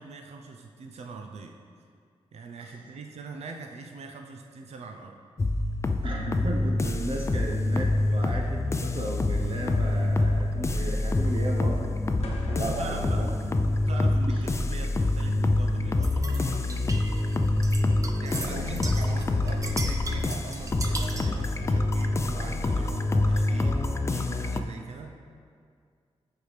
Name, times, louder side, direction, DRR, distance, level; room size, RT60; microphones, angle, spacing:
voice 1, 0.0-1.6 2.3-5.2 12.2-12.4 12.6-13.2 13.8-16.7 18.2-25.1, right 4 dB, 85° right, 3 dB, 0.6 m, -42 dB
sound 1, 5.4-24.6, left 2 dB, 25° left, 0.4 m, -26 dB
voice 2, 6.0-13.3 14.3-14.4 18.4-18.8, right 2 dB, 55° right, 0 dB, 0.9 m, -35 dB
sound 2, 12.2-14.3, left 2 dB, 75° left, 1.0 m, -45 dB
sound 3, 16.0-21.4, right 2 dB, 30° right, 0.7 m, -38 dB
14.0 x 4.8 x 3.3 m, 2.2 s
wide cardioid pair, 125°, 11 cm